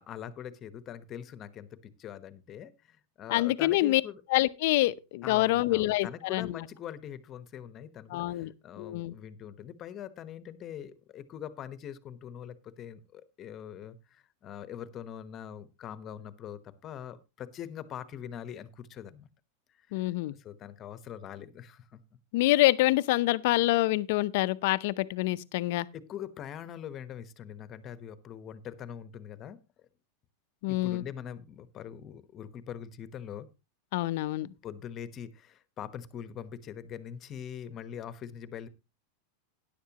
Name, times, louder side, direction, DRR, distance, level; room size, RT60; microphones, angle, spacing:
voice 1, 0.0-4.2 5.2-19.3 19.9-22.0 25.9-29.6 30.7-33.5 34.6-38.7, left 9 dB, 35° left, 1.1 m, -43 dB
voice 2, 3.3-4.0 4.3-6.5 8.1-8.5 8.8-9.1 19.9-20.3 22.3-25.9 30.6-31.0 33.9-34.5, left 17 dB, 65° left, 0.6 m, -26 dB
13.0 x 10.5 x 2.9 m
hypercardioid pair, 120°, 0 cm